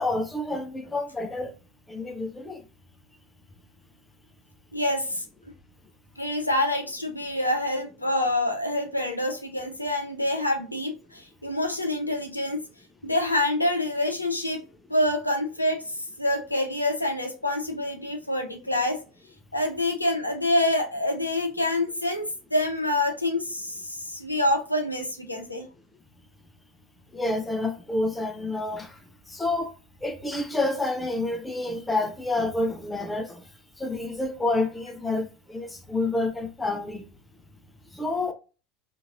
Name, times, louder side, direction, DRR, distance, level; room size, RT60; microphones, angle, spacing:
voice 1, 0.0-1.5 1.9-2.6 27.1-29.0 29.3-29.7 30.0-33.4 33.8-37.0 37.9-38.3, left 2 dB, 10° left, 0.5 m, -28 dB
voice 2, 4.7-5.2 6.2-12.6 13.0-14.6 14.9-19.0 19.5-25.7, left 1 dB, 85° left, 0.5 m, -26 dB
2.8 x 2.5 x 2.4 m
figure-of-eight pair, 75°, 0 cm